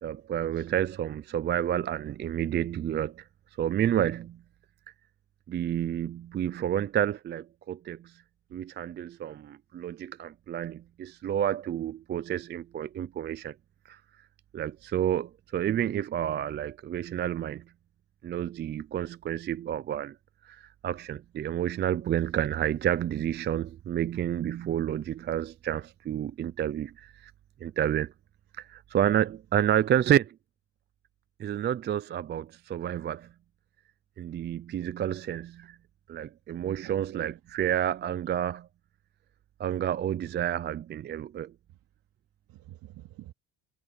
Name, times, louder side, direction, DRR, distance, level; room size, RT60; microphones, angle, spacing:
voice 1, 0.0-3.2 3.6-4.4 5.5-8.1 8.5-13.5 13.9-14.0 14.5-17.6 18.2-20.1 20.5-27.3 27.6-28.1 28.6-30.3 31.4-33.3 34.2-35.8 36.1-38.7 39.6-41.5, right 10 dB, 30° right, 0.4 m, -30 dB
voice 2, 36.6-37.3 42.5-43.3, right 15 dB, 60° right, 2.9 m, -48 dB
cardioid pair, 135°, 38 cm